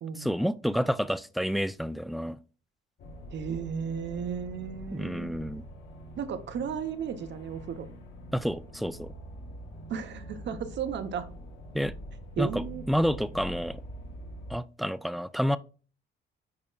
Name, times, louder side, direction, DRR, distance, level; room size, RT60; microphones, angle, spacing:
voice 1, 0.2-2.4 4.9-5.6 8.3-9.1 11.7-11.9 12.4-13.8 14.5-15.6, equal, ahead, 0.3 m, -29 dB
sound 1, 3.0-14.6, equal, 65° left, 1.8 m, -44 dB
voice 2, 3.3-5.3 6.2-7.9 9.9-11.2 12.4-12.8, right 7 dB, 65° right, 0.9 m, -34 dB
10.5 x 4.2 x 2.4 m
cardioid pair, 90°, 20 cm